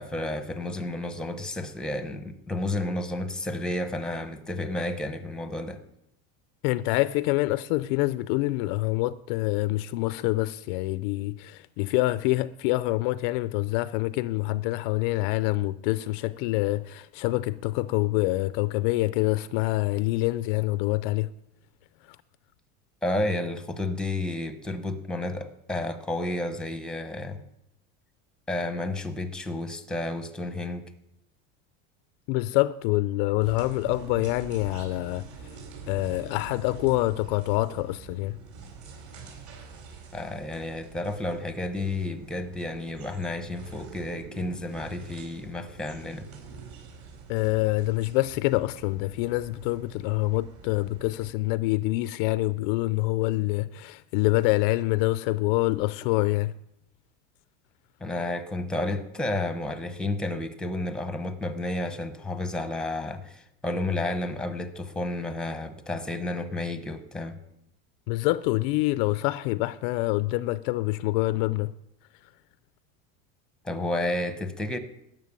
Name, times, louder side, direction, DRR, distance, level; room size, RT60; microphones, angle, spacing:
voice 1, 0.0-5.8 23.0-27.4 28.5-30.9 40.1-46.3 58.0-67.4 73.6-74.8, left 2 dB, ahead, 0.8 m, -31 dB
voice 2, 6.6-21.3 22.1-22.2 32.3-35.6 35.9-38.4 47.3-56.5 68.1-71.7, left 19 dB, 55° left, 0.4 m, -26 dB
sound 1, 33.4-51.3, right 5 dB, 50° right, 4.8 m, -45 dB
13.0 x 7.4 x 9.5 m
cardioid pair, 165°, 33 cm